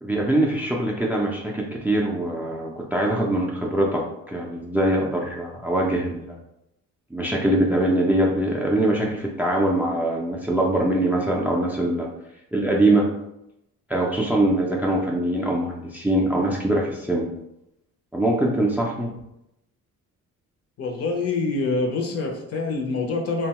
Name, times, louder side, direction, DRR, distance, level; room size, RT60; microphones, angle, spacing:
voice 1, 0.0-6.4 7.1-12.1 12.5-13.1 13.9-17.3 18.1-19.1, right 1 dB, 5° right, -1 dB, 0.4 m, -23 dB
voice 2, 20.8-23.5, left 3 dB, 55° left, 1 dB, 0.7 m, -25 dB
2.7 x 2.2 x 2.9 m, 0.85 s
cardioid pair, 90°, 30 cm